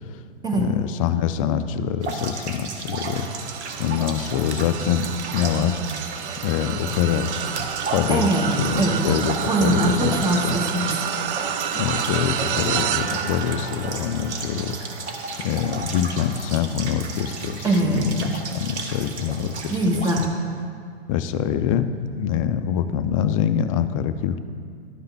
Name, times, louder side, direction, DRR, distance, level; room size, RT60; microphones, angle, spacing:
voice 1, 0.6-3.3 3.8-5.8 6.4-7.3 7.6-8.3 8.6-10.6 11.8-14.8 15.4-17.7 17.9-18.2 18.5-19.8 21.1-24.4, left 9 dB, 30° left, 10 dB, 0.4 m, -25 dB
sound 1, 2.0-20.3, right 4 dB, 80° right, 1.1 m, -34 dB
sound 2, 3.0-18.5 19.0-19.3 20.5-20.6, right 9 dB, 50° right, 0.5 m, -30 dB
voice 2, 8.1-9.0 9.5-10.9 17.6-18.0 19.7-20.3, right 1 dB, 10° right, 1 dB, 0.9 m, -22 dB
11.5 x 5.5 x 3.4 m, 2.2 s
hypercardioid pair, 115°, 34 cm